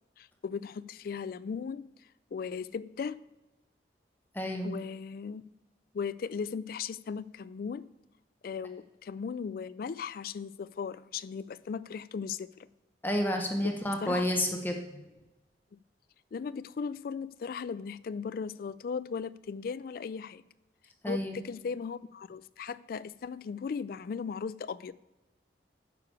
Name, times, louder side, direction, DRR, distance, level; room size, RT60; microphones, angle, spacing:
voice 1, 0.2-1.9 2.3-3.2 4.6-5.4 5.9-7.9 8.4-12.5 13.6-14.3 16.3-20.4 21.1-24.9, left 6 dB, 55° left, 0.3 m, -37 dB
voice 2, 4.3-4.7 13.0-15.0 21.0-21.4, equal, 10° left, 0.9 m, -30 dB
9.6 x 6.8 x 4.8 m
head